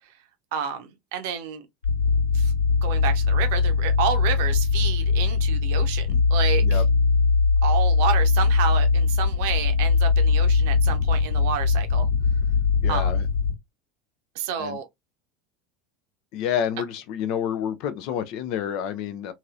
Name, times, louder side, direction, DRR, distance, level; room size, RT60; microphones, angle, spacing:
voice 1, 0.5-1.7 2.3-2.5 2.8-6.8 7.6-12.1 12.9-13.1 14.3-14.9, right 8 dB, 60° right, 0.7 m, -30 dB
sound 1, 1.8-13.5, left 4 dB, 80° left, 1.2 m, -21 dB
voice 2, 12.8-13.2 14.6-14.8 16.3-19.3, left 9 dB, 50° left, 0.5 m, -29 dB
2.9 x 2.7 x 2.3 m
figure-of-eight pair, 75°, 0 cm